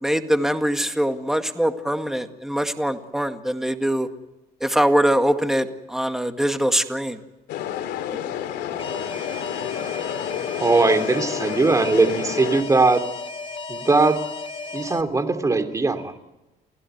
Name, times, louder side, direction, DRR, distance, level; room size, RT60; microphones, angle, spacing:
voice 1, 0.0-4.1 4.6-7.2, equal, ahead, 7 dB, 2.0 m, -22 dB
sound 1, 7.5-12.6, left 10 dB, 80° left, 2.9 m, -30 dB
Alarm, 8.8-15.0, left 4 dB, 30° left, 2.0 m, -34 dB
voice 2, 9.8-13.0 13.7-14.2 14.7-16.1, right 3 dB, 20° right, 8 dB, 3.0 m, -20 dB
29.5 x 16.5 x 8.1 m, 1.0 s
cardioid pair, 110°, 17 cm